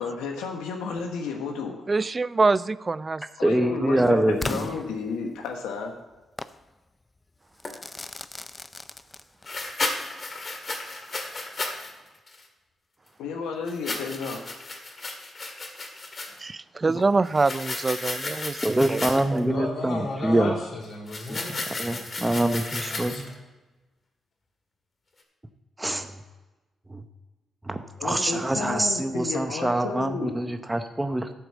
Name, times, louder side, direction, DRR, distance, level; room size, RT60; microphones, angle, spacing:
voice 1, 0.0-1.7 3.4-5.9 13.2-14.4 28.0-30.3, left 5 dB, 90° left, 3 dB, 1.1 m, -32 dB
voice 2, 1.9-3.2 3.6-4.2 16.4-19.1 19.3-19.4, right 3 dB, 35° right, 18 dB, 0.4 m, -25 dB
voice 3, 3.4-4.6 18.6-20.5 21.3-21.4 21.8-23.3 25.8-26.1 26.9-27.0 27.7-31.3, right 1 dB, 15° right, 7 dB, 0.9 m, -25 dB
Crackle / Fireworks, 4.4-5.6 6.4-6.6 7.6-9.6, left 2 dB, 25° left, 0.6 m, -36 dB
sound 1, 7.7-7.8 9.5-11.9 12.3-12.4 13.7-16.4 17.2-19.4 21.1-23.3, left 2 dB, 40° left, 2.0 m, -34 dB
voice 4, 19.4-22.0 22.3-23.3, left 2 dB, 60° left, -1 dB, 3.2 m, -35 dB
11.5 x 4.7 x 7.3 m, 1.1 s
supercardioid pair, 55°, 0 cm